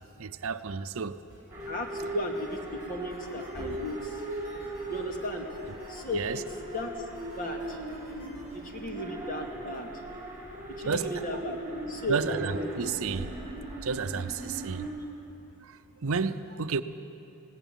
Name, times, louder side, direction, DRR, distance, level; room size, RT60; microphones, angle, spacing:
voice 1, 0.2-1.2 6.1-6.4 10.9-11.4 12.1-13.3 13.8-14.9 15.6-16.8, right 5 dB, 65° right, 11 dB, 0.7 m, -32 dB
sound 1, 1.3-2.0 2.3-6.8 7.1-8.6, left 1 dB, 70° left, 7.0 m, -55 dB
sound 2, 1.5-14.9, right 1 dB, 10° right, 3.2 m, -39 dB
voice 2, 1.7-2.6 2.9-4.1 4.9-5.5 5.9-6.4 6.7-6.9 7.4-7.8 8.7-9.9 10.8-11.6 11.9-12.2, equal, 40° left, 2 dB, 2.3 m, -35 dB
19.5 x 17.0 x 9.1 m, 2.8 s
head